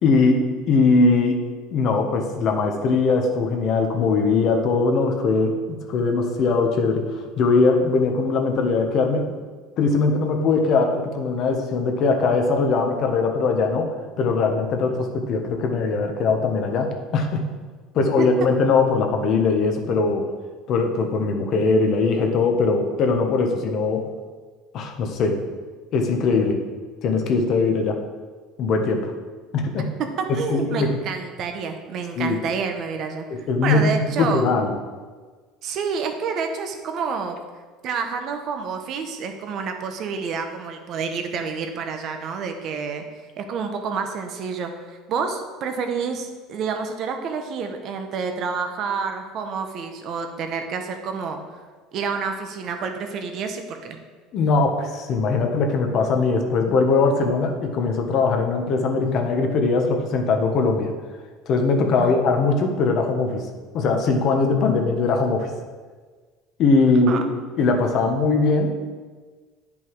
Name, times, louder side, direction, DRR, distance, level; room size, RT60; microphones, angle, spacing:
voice 1, 0.0-9.4 9.8-17.4 17.9-20.3 20.7-24.1 24.7-25.4 25.9-26.6 27.0-28.0 28.6-29.1 29.5-29.9 30.5-31.0 32.2-32.4 33.3-34.7 54.3-60.9 61.5-63.5 63.7-65.5 66.6-67.3 67.6-68.9, left 4 dB, 50° left, 4 dB, 1.3 m, -21 dB
voice 2, 30.2-34.5 35.6-37.4 37.8-43.0 43.4-44.7 45.1-51.4 51.9-54.0 62.0-62.2 67.1-67.2, right 5 dB, 50° right, 5 dB, 1.2 m, -28 dB
9.9 x 5.5 x 4.8 m, 1.4 s
supercardioid pair, 120°, 0 cm